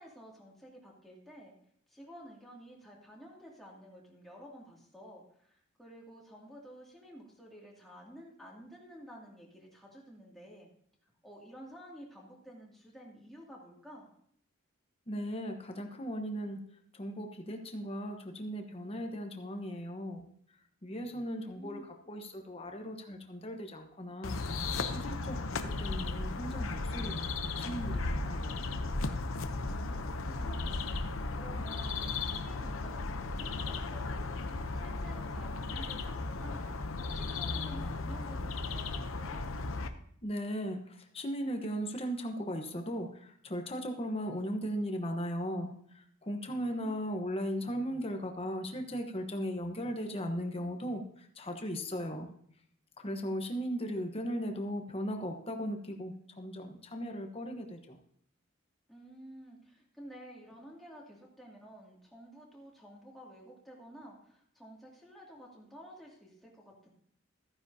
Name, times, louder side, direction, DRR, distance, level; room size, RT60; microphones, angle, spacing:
voice 1, 0.0-1.5 1.9-10.7 11.2-14.1 21.3-21.8 29.6-30.8 31.4-36.6 37.0-39.4 46.5-47.1 58.9-66.9, equal, ahead, -4 dB, 2.5 m, -51 dB
voice 2, 15.1-20.2 20.8-24.4 24.9-27.3 27.6-28.7 40.2-52.3 53.0-58.0, equal, 30° left, 4 dB, 1.1 m, -37 dB
sound 1, 24.2-39.9, left 3 dB, 75° left, 0.8 m, -35 dB
14.5 x 9.6 x 2.8 m, 0.65 s
head